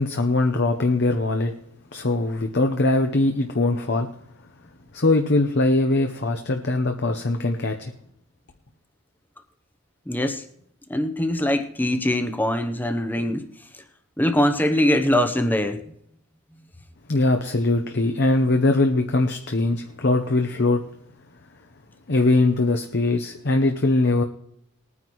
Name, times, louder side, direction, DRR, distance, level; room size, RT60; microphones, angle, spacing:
voice 1, 0.0-1.5 1.9-4.1 4.9-7.9 17.1-20.8 22.1-24.2, left 2 dB, 50° left, 0.8 m, -21 dB
voice 2, 10.1-10.4 10.9-13.4 14.2-15.8, left 1 dB, 10° left, 0.8 m, -22 dB
20.5 x 9.5 x 3.1 m
head